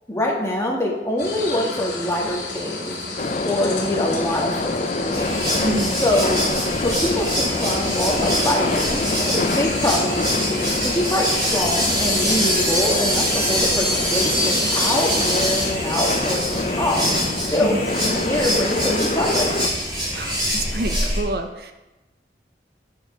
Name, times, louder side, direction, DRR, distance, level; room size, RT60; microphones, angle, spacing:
voice 1, 0.1-2.9 3.4-5.3 6.0-6.4 6.8-9.0 9.3-10.7 10.9-17.0 17.5-19.5, left 1 dB, 15° left, -2 dB, 1.5 m, -24 dB
sound 1, 1.2-15.1, left 3 dB, 85° left, 2.3 m, -32 dB
sound 2, 3.2-19.7, left 2 dB, 40° left, 0.5 m, -26 dB
Chicharras Avellaneda, 5.1-21.2, equal, 25° right, 2.8 m, -24 dB
voice 2, 5.6-6.0 17.6-17.9 20.1-21.7, right 1 dB, 60° right, 6 dB, 0.7 m, -27 dB
7.5 x 7.0 x 5.6 m, 1.0 s
head